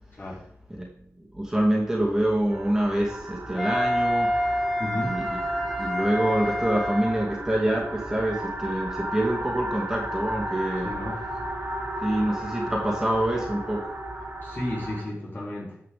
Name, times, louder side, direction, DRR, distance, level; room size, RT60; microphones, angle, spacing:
voice 1, 0.1-0.5 4.8-5.3 10.8-11.3 14.4-15.8, left 1 dB, 40° left, -6 dB, 4.0 m, -33 dB
voice 2, 1.3-4.3 5.0-5.2 5.8-10.9 12.0-13.8, right 1 dB, 10° right, -3 dB, 2.6 m, -26 dB
sound 1, 2.5-15.0, right 1 dB, 70° right, 2.9 m, -35 dB
Wind instrument woodwind instrument, 3.6-7.3, equal, 10° left, 1.5 m, -27 dB
15.5 x 5.8 x 3.8 m, 0.68 s
wide cardioid pair, 85°, 5 cm